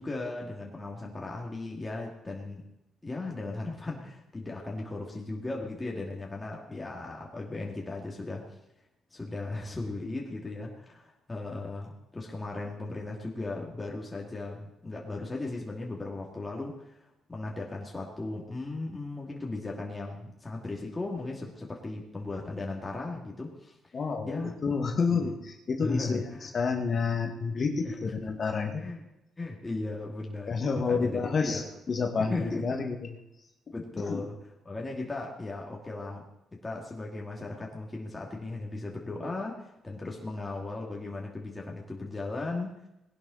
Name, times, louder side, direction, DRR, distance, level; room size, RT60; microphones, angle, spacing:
voice 1, 0.0-2.7 3.0-8.5 9.1-17.0 17.3-23.8 24.3-24.6 25.1-25.4 25.8-26.5 27.8-28.0 28.8-29.0 29.4-31.7 32.2-32.8 33.7-34.4 34.6-42.8, left 2 dB, 20° left, -2 dB, 2.6 m, -37 dB
voice 2, 23.9-28.8 30.5-31.6 31.9-33.1 34.0-34.2, left 5 dB, 45° left, 4 dB, 2.0 m, -29 dB
19.0 x 11.0 x 4.2 m, 0.87 s
cardioid pair, 90°, 0 cm